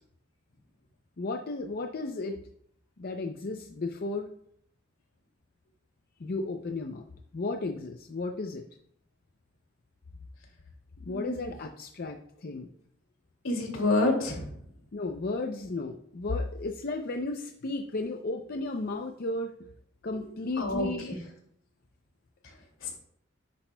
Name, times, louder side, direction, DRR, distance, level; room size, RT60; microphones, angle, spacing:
voice 1, 1.2-2.4 3.0-4.3 6.2-7.0 7.3-8.6 11.0-12.7 14.9-19.5 20.0-21.1, left 2 dB, 50° left, 4 dB, 0.5 m, -34 dB
voice 2, 11.1-11.5 13.4-14.5 20.6-20.9 22.8-22.9, left 2 dB, 85° left, 1 dB, 2.4 m, -27 dB
10.5 x 8.4 x 2.2 m, 0.69 s
head